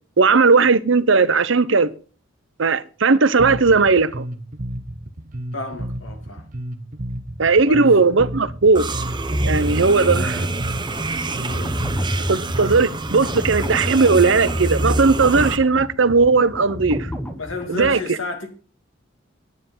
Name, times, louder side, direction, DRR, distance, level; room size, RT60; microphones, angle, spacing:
voice 1, 0.2-1.9 2.6-4.2 7.4-8.9 9.4-10.5 12.3-17.1 17.7-18.2, right 4 dB, 65° right, 0.8 m, -17 dB
Bass guitar, 3.4-13.0, right 1 dB, 40° right, 1.1 m, -32 dB
voice 2, 5.5-6.4 7.6-7.9 11.4-11.8 17.4-18.5, left 2 dB, 75° left, 2.9 m, -31 dB
sound 1, 8.7-15.6, right 2 dB, 25° right, 1.0 m, -25 dB
sound 2, 10.8-17.9, equal, 10° left, 1.3 m, -32 dB
9.9 x 9.4 x 5.5 m
head